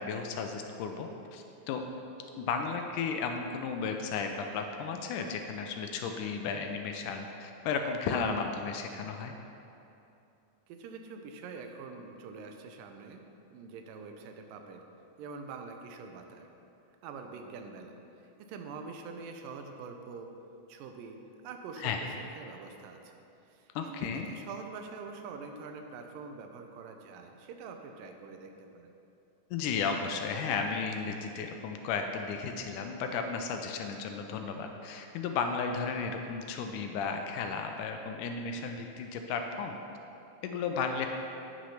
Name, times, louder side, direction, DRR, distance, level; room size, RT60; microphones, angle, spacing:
voice 1, 0.0-1.8 2.4-9.3 21.8-22.0 23.8-24.3 29.5-39.8 40.4-41.1, left 5 dB, 80° left, 4 dB, 2.0 m, -34 dB
voice 2, 10.7-13.2 13.5-14.8 15.2-16.5 17.0-20.3 20.7-21.2 21.4-23.2 23.5-28.9, right 4 dB, 85° right, 5 dB, 2.3 m, -45 dB
8.2 x 6.1 x 5.7 m, 2.8 s
omnidirectional pair, 3.9 m